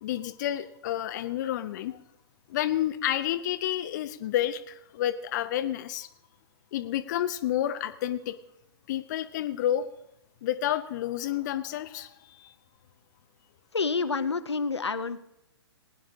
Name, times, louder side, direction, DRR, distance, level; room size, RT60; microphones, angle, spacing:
voice 1, 0.0-2.0 2.5-6.1 6.7-8.4 8.9-9.9 10.4-12.5, left 12 dB, 40° left, 10 dB, 0.7 m, -30 dB
voice 2, 13.7-15.2, left 4 dB, 85° left, 10 dB, 0.9 m, -28 dB
20.0 x 9.3 x 3.6 m, 0.82 s
figure-of-eight pair, 125°, 14 cm